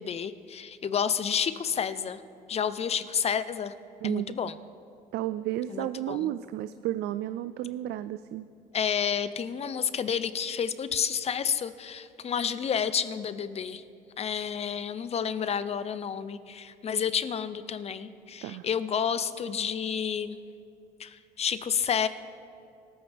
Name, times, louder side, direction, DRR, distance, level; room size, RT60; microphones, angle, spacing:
voice 1, 0.0-2.2 2.5-3.7 4.0-4.5 5.7-6.3 8.7-13.8 14.2-20.4 21.0-22.1, left 7 dB, 40° left, 13 dB, 0.7 m, -30 dB
voice 2, 4.0-4.4 5.1-8.5 18.4-18.7, right 13 dB, 80° right, 13 dB, 0.4 m, -32 dB
25.0 x 13.5 x 3.5 m, 2.6 s
cardioid pair, 110°, 17 cm